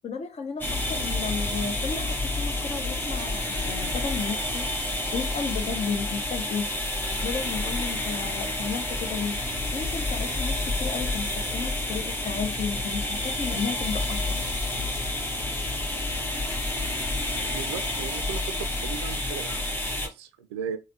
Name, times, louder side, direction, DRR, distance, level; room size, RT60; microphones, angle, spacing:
voice 1, 0.0-6.7 7.2-9.4 9.7-14.4, left 5 dB, 50° left, 0.8 m, -33 dB
sound 1, 0.6-20.1, left 2 dB, 15° left, 1.1 m, -29 dB
voice 2, 17.5-20.8, right 7 dB, 85° right, 0.4 m, -37 dB
4.0 x 2.1 x 2.7 m
hypercardioid pair, 40°, 14 cm